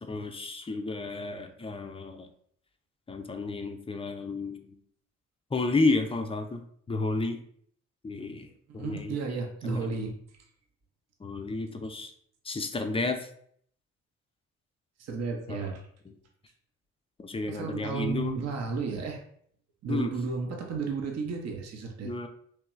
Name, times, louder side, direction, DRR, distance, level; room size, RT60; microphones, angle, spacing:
voice 1, 0.0-2.3 3.1-4.8 5.5-6.6 6.9-7.4 8.0-8.5 8.7-9.2 9.6-9.9 11.2-12.1 12.4-13.3 15.5-15.7 16.1-16.2 17.2-18.5 19.9-20.1 22.0-22.3, left 3 dB, 15° left, 6 dB, 0.5 m, -31 dB
voice 2, 8.7-10.2 15.0-15.8 17.5-19.2 19.8-22.1, right 4 dB, 45° right, 2 dB, 0.8 m, -33 dB
3.3 x 3.0 x 3.0 m, 0.64 s
figure-of-eight pair, 40°, 38 cm